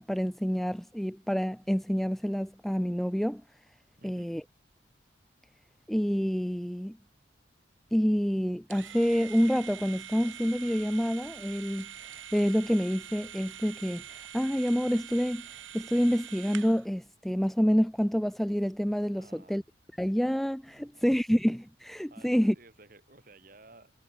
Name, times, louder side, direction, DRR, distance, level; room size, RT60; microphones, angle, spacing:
voice 1, 0.0-3.4 4.0-4.4 5.9-7.0 7.9-11.9 12.3-15.4 15.7-19.6 20.0-22.5, equal, ahead, 0.3 m, -28 dB
voice 2, 4.0-4.4 19.2-19.6 20.7-21.1 22.1-23.9, right 2 dB, 45° right, 4.2 m, -55 dB
sound 1, 8.7-16.9, right 10 dB, 90° right, 1.1 m, -45 dB
head